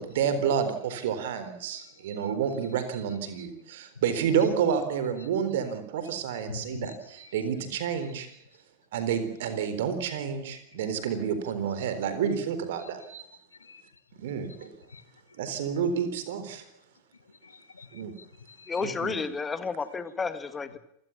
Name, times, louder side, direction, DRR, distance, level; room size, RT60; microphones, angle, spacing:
voice 1, 0.0-8.3 8.9-13.2 14.2-14.7 15.4-16.6 17.9-18.1 18.8-19.2, right 7 dB, 55° right, 4.1 m, -29 dB
voice 2, 6.5-7.0 10.7-10.8 12.8-13.1 13.6-13.8 14.4-14.6 14.9-15.0 17.4-18.7, left 5 dB, 75° left, 1.8 m, -45 dB
voice 3, 18.7-20.8, left 5 dB, 15° left, 1.7 m, -31 dB
28.0 x 16.5 x 7.3 m
figure-of-eight pair, 90°, 0 cm